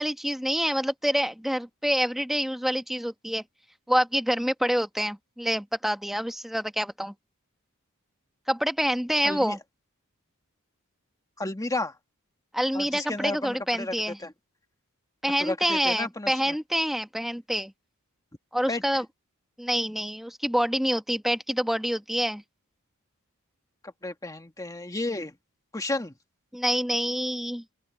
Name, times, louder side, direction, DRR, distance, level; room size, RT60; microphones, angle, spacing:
voice 1, 0.0-3.4 3.9-7.1 8.5-9.6 12.5-14.2 15.2-17.7 18.5-19.0 19.6-22.4 26.5-27.6, equal, ahead, 1.1 m, -27 dB
voice 2, 9.2-9.6 11.4-12.0 12.7-13.9 14.2-14.3 15.4-16.6 18.7-18.8 23.8-25.3 25.7-26.1, left 2 dB, 15° left, 1.8 m, -32 dB
open air
head